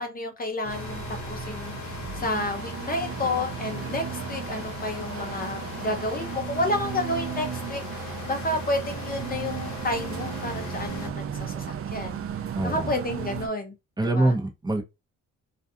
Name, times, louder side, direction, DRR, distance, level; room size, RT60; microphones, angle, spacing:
voice 1, 0.0-12.2 12.6-13.7 14.2-14.4, left 2 dB, 30° left, 0.6 m, -30 dB
sound 1, 0.6-13.5, right 8 dB, 50° right, 0.5 m, -35 dB
sound 2, 0.7-11.1, left 7 dB, 65° left, 0.8 m, -39 dB
voice 2, 12.6-12.9 14.0-14.8, right 2 dB, 15° right, 0.7 m, -24 dB
2.5 x 2.3 x 2.6 m
cardioid pair, 90°, 30 cm